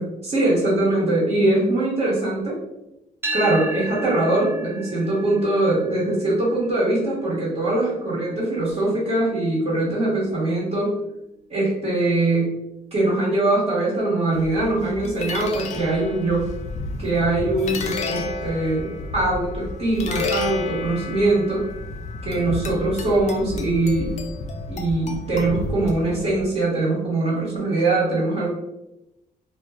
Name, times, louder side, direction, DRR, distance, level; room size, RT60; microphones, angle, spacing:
voice 1, 0.0-2.6 3.3-11.0 11.5-12.5 12.9-16.5 17.0-21.7 22.2-24.1 24.7-28.5, right 2 dB, 40° right, -7 dB, 1.1 m, -22 dB
sound 1, 3.2-11.4, right 2 dB, 15° right, 0.5 m, -36 dB
sound 2, 14.3-26.4, left 3 dB, 45° left, 0.4 m, -31 dB
2.4 x 2.1 x 3.4 m, 0.90 s
cardioid pair, 115°, 16 cm